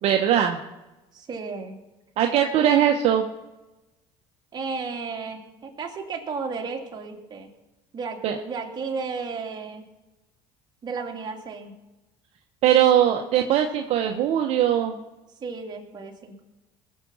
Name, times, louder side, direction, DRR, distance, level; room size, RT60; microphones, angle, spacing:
voice 1, 0.0-0.6 2.2-3.2 8.2-8.4 12.6-15.0, right 10 dB, 60° right, 3 dB, 1.2 m, -20 dB
voice 2, 1.1-1.8 2.6-2.9 4.5-7.5 7.9-9.8 10.8-11.7 15.4-16.4, right 4 dB, 35° right, 1 dB, 2.8 m, -33 dB
20.0 x 7.4 x 5.6 m, 1.0 s
supercardioid pair, 105°, 12 cm